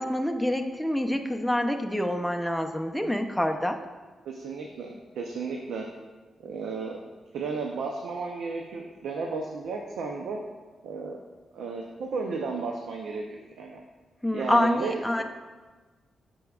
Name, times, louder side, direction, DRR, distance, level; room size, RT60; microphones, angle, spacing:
voice 1, 0.0-3.8 14.2-15.2, left 1 dB, ahead, 4 dB, 0.6 m, -26 dB
voice 2, 4.2-5.9 6.4-7.0 7.3-10.4 10.8-11.2 11.5-13.8 14.3-15.0, right 4 dB, 85° right, 1 dB, 0.6 m, -33 dB
9.3 x 6.2 x 2.4 m, 1.3 s
cardioid pair, 65°, 0 cm